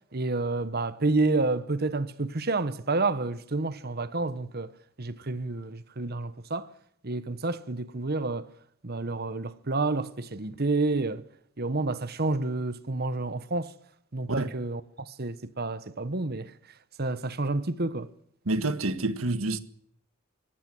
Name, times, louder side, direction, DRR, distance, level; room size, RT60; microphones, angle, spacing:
voice 1, 0.1-4.7 5.0-6.7 7.0-8.5 8.8-11.2 11.6-13.7 14.1-16.5 17.0-18.1, right 3 dB, 45° right, 1.2 m, -29 dB
voice 2, 18.4-19.6, right 2 dB, 75° right, 1.7 m, -28 dB
23.5 x 16.5 x 7.8 m
head